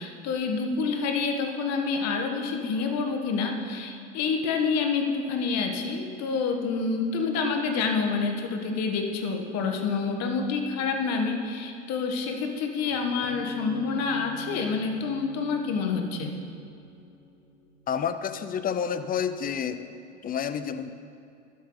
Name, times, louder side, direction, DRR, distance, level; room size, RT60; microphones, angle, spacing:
voice 1, 0.0-16.3, left 4 dB, 45° left, 4 dB, 1.6 m, -28 dB
sound 1, 12.8-18.5, equal, 70° left, 2.9 m, -44 dB
voice 2, 17.9-19.8 20.2-20.9, left 7 dB, 25° left, 11 dB, 0.6 m, -29 dB
12.0 x 10.5 x 4.0 m, 2.5 s
hypercardioid pair, 90°, 35 cm